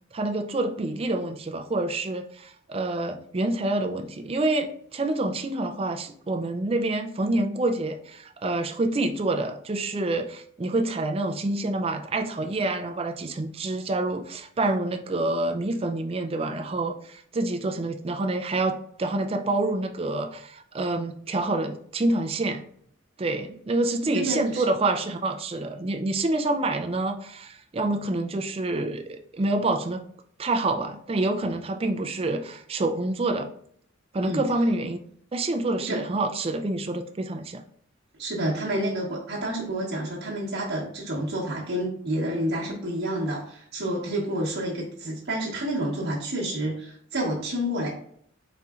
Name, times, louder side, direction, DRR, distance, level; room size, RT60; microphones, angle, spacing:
voice 1, 0.1-22.7 23.2-30.1 30.4-33.5 34.1-35.0 35.3-37.6, right 2 dB, 30° right, 5 dB, 0.4 m, -27 dB
voice 2, 24.1-24.6 34.2-34.4 35.9-36.0 38.2-47.9, right 1 dB, 50° right, -6 dB, 1.0 m, -29 dB
4.2 x 3.9 x 2.4 m, 0.63 s
head